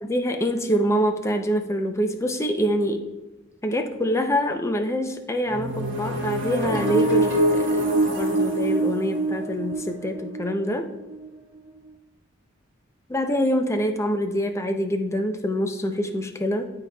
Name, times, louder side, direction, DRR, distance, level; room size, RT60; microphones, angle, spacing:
voice 1, 0.0-3.0 3.6-10.9 13.1-16.7, equal, 15° left, 6 dB, 0.5 m, -25 dB
sound 1, 5.5-11.2, right 1 dB, 70° right, 1.2 m, -24 dB
11.5 x 4.0 x 2.2 m, 1.1 s
head